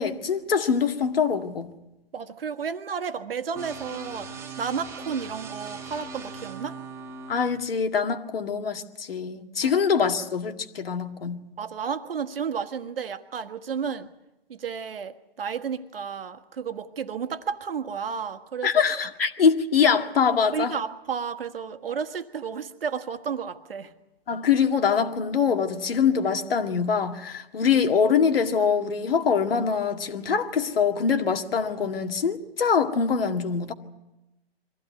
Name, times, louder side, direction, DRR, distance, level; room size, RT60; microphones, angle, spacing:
voice 1, 0.0-1.7 7.3-11.4 18.6-20.7 24.3-33.7, left 6 dB, 65° left, 2.1 m, -24 dB
voice 2, 2.1-4.3 4.6-6.8 9.6-9.8 11.6-14.1 14.5-18.7 20.5-23.9, right 6 dB, 65° right, 1.6 m, -32 dB
sound 1, 3.6-7.5, right 4 dB, 10° right, 1.8 m, -39 dB
23.5 x 15.5 x 9.6 m
hypercardioid pair, 140°, 31 cm